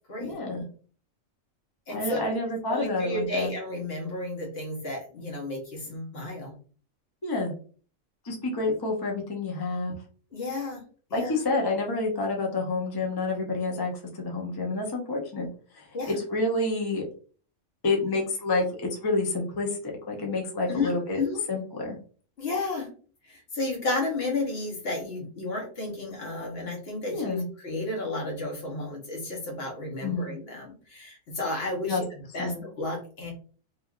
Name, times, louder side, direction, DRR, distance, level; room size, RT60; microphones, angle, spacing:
voice 1, 0.2-0.7 1.9-3.5 7.2-7.5 8.2-10.0 11.1-13.9 14.2-15.5 15.7-17.0 17.8-21.2 21.5-22.0 27.1-27.5 30.0-30.3 31.9-32.0 32.4-32.6, left 2 dB, 35° left, 0 dB, 0.4 m, -28 dB
voice 2, 1.9-2.3 2.7-6.5 10.3-10.8 11.1-11.3 15.9-16.2 20.7-21.4 22.4-22.9 23.3-32.0 32.3-33.3, left 2 dB, 55° left, 0 dB, 1.1 m, -32 dB
3.2 x 2.4 x 2.3 m, 0.41 s
omnidirectional pair, 1.3 m